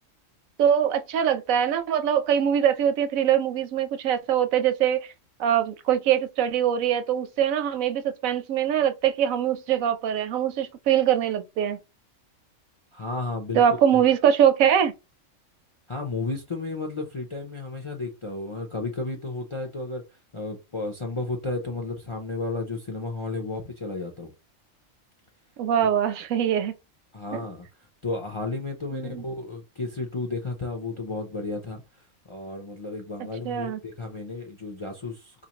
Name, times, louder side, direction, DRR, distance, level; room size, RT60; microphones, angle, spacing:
voice 1, 0.6-5.1 5.4-11.8 13.5-14.9 25.6-26.7 28.9-29.2 33.4-33.8, right 9 dB, 85° right, 1.1 m, -23 dB
voice 2, 12.9-13.6 13.9-14.0 15.9-24.3 25.8-26.0 27.1-32.0 32.3-35.5, left 3 dB, 40° left, 0.4 m, -33 dB
4.1 x 2.5 x 2.9 m
omnidirectional pair, 1.4 m